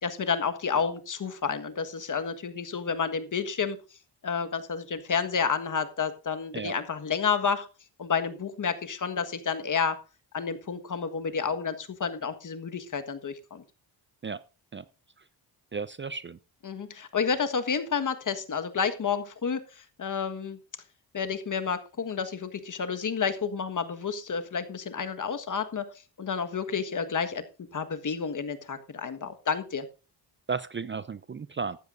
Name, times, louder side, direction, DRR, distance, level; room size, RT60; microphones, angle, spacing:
voice 1, 0.0-3.8 4.2-7.7 8.0-10.0 10.3-13.6 16.6-20.6 21.1-25.9 26.2-29.9, left 6 dB, 45° left, 9 dB, 1.5 m, -30 dB
voice 2, 15.7-16.4 30.5-31.8, right 5 dB, 25° right, 16 dB, 0.5 m, -34 dB
14.5 x 12.0 x 2.6 m, 0.32 s
cardioid pair, 85°, 43 cm